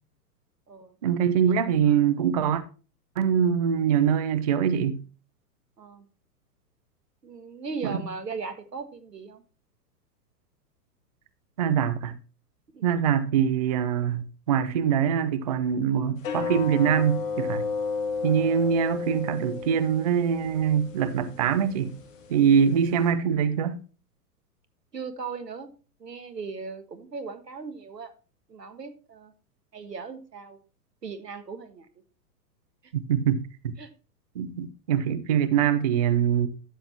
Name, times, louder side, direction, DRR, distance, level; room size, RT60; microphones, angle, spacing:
voice 1, 1.0-2.6 3.2-5.0 7.8-8.0 11.6-12.2 12.8-17.7 18.2-22.0 22.3-23.8 32.9-33.7 34.4-36.5, right 8 dB, 25° right, 0.4 m, -23 dB
voice 2, 7.2-9.4 12.7-12.8 24.9-25.7 26.0-28.1 28.5-29.3 29.7-30.6 31.0-31.9 33.8-33.9, right 4 dB, 75° right, 1.7 m, -38 dB
sound 1, 16.2-23.1, left 4 dB, 50° left, 1.9 m, -33 dB
12.5 x 7.7 x 2.9 m
figure-of-eight pair, 105°, 49 cm